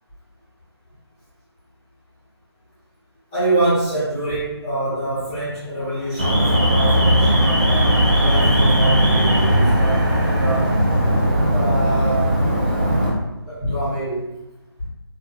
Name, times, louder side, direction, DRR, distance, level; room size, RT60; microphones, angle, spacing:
voice 1, 3.3-10.8 11.5-12.3 13.5-14.3, right 2 dB, 10° left, -12 dB, 0.7 m, -25 dB
sound 1, 5.5-11.9, right 2 dB, 45° right, 0.7 m, -35 dB
Alarm, 6.2-13.1, equal, 20° right, 0.3 m, -17 dB
3.3 x 2.2 x 2.2 m, 0.97 s
figure-of-eight pair, 155°, 14 cm